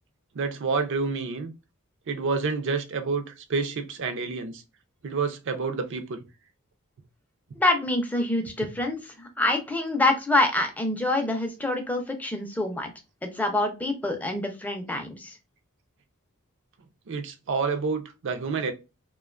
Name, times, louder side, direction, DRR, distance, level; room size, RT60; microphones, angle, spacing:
voice 1, 0.3-1.5 2.1-4.6 5.0-6.2 17.1-18.7, right 4 dB, 60° right, 0.5 m, -28 dB
voice 2, 7.6-12.9 13.2-15.4, left 2 dB, 5° left, 0.4 m, -26 dB
2.4 x 2.2 x 2.3 m
head